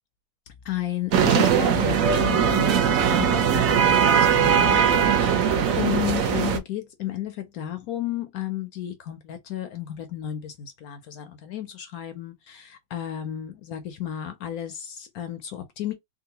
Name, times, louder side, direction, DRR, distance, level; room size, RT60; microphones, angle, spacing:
voice 1, 0.6-15.9, left 11 dB, 70° left, 0.9 m, -33 dB
sound 1, 1.1-6.6, right 7 dB, 60° right, 0.9 m, -20 dB
3.8 x 2.3 x 2.7 m
omnidirectional pair, 2.0 m